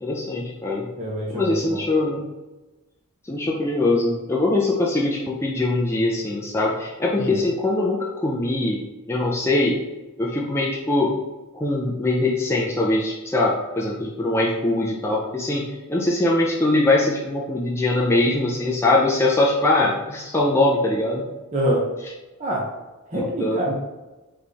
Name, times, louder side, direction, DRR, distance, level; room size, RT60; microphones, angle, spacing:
voice 1, 0.0-0.9 1.3-2.3 3.2-8.8 9.1-9.8 10.2-11.1 11.5-21.2 23.1-23.6, left 2 dB, 10° left, -4 dB, 0.4 m, -22 dB
voice 2, 1.0-1.8 7.1-7.4 21.5-21.8 22.4-22.6 23.1-23.7, right 1 dB, 35° right, -4 dB, 0.7 m, -25 dB
4.2 x 3.2 x 3.4 m, 1.1 s
head